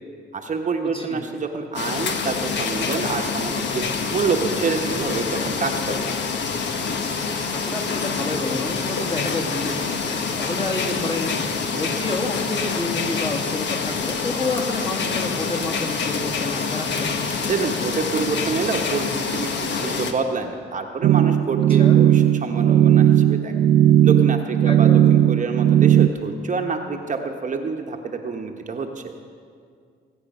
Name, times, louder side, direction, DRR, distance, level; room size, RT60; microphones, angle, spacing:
voice 1, 0.3-3.8 4.1-6.1 17.5-23.5 24.0-28.9, right 4 dB, 40° right, 3 dB, 1.1 m, -27 dB
voice 2, 0.9-1.3 7.5-17.1 21.7-22.0 24.6-25.1, left 2 dB, 25° left, -1 dB, 2.3 m, -29 dB
sound 1, 1.7-20.1, left 5 dB, 65° left, 1.2 m, -26 dB
sound 2, 21.0-26.1, right 11 dB, 70° right, 0.7 m, -16 dB
19.5 x 8.3 x 5.4 m, 2.2 s
cardioid pair, 90°, 20 cm